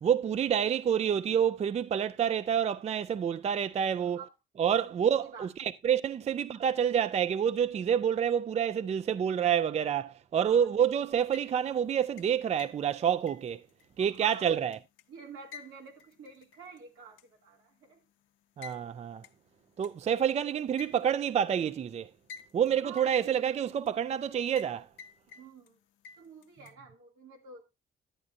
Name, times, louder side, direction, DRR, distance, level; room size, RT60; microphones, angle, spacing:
voice 1, 0.0-4.2 4.6-13.7 14.0-14.8 18.6-19.2 19.8-22.1 22.5-24.9, right 8 dB, 35° right, 0.4 m, -28 dB
voice 2, 10.3-10.7 14.0-14.6 15.1-18.0 22.8-23.3 25.4-25.8 26.2-27.6, right 5 dB, 85° right, 2.4 m, -49 dB
sound 1, 11.1-11.8 12.2-15.0 15.5-16.8 17.2-17.3 18.6-18.8 19.2-19.3 19.8-19.9 20.8-21.3 22.3-22.7 23.0-23.9 24.6-24.7 25.0-25.7 26.0-26.7, left 6 dB, 80° left, 0.7 m, -49 dB
11.0 x 8.6 x 2.5 m
cardioid pair, 90°, 20 cm